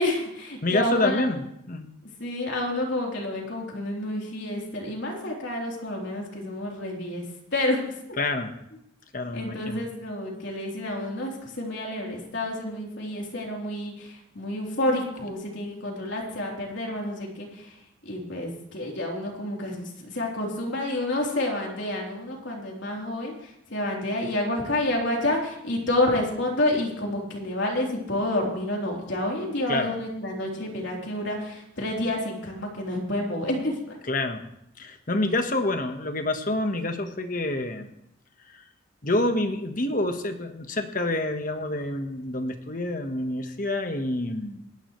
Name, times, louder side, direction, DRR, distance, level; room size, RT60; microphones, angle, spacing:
voice 1, 0.0-1.3 2.2-7.2 7.5-7.9 9.3-34.0, left 1 dB, 65° left, -1 dB, 3.7 m, -29 dB
voice 2, 0.6-1.4 1.7-1.9 8.2-8.5 9.1-9.8 29.7-29.9 34.1-34.5 34.8-37.9 38.5-38.6 39.0-44.7, left 2 dB, 40° left, 6 dB, 1.4 m, -27 dB
28.0 x 11.5 x 3.2 m, 0.78 s
head